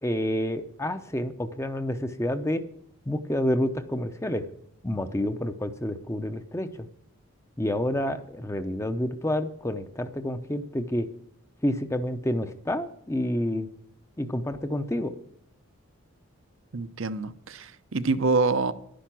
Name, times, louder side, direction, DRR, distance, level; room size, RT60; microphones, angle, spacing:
voice 1, 0.0-2.6 3.1-4.5 4.8-6.9 7.6-11.1 11.6-13.7 14.2-15.1, left 1 dB, 15° left, 0.6 m, -29 dB
voice 2, 16.7-18.7, right 3 dB, 65° right, 0.7 m, -26 dB
11.0 x 10.0 x 6.1 m
head